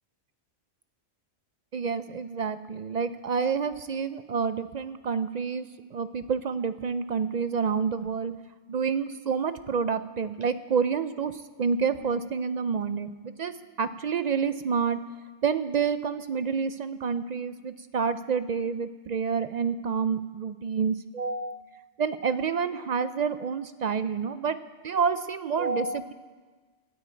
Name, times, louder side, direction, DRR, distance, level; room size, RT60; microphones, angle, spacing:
voice 1, 1.7-8.3 8.7-15.0 15.4-24.6 24.8-26.1, right 6 dB, 65° right, 12 dB, 0.4 m, -28 dB
18.0 x 13.0 x 4.4 m, 1.4 s
omnidirectional pair, 1.2 m